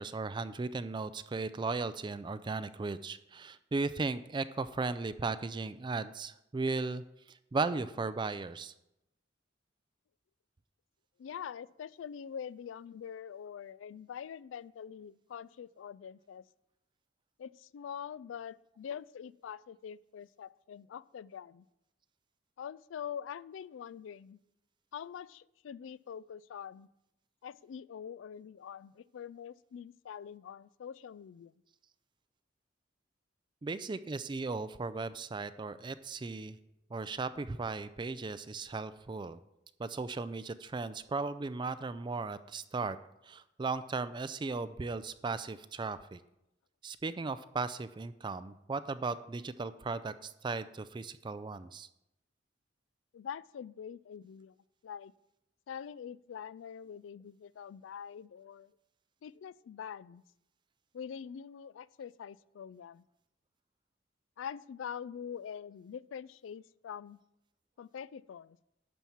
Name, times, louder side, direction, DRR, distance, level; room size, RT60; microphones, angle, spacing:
voice 1, 0.0-7.0 7.5-8.7 33.6-36.6 36.9-39.4 39.8-43.0 43.2-46.2 46.8-51.9, right 3 dB, 25° right, 13 dB, 0.3 m, -36 dB
voice 2, 11.2-16.4 17.4-21.6 22.6-24.4 24.9-26.9 27.4-31.5 53.1-54.6 54.8-55.1 55.7-58.7 59.2-60.2 60.9-63.0 64.4-67.2 67.8-68.6, left 8 dB, 85° left, 20 dB, 0.3 m, -44 dB
11.5 x 4.5 x 7.1 m, 0.85 s
head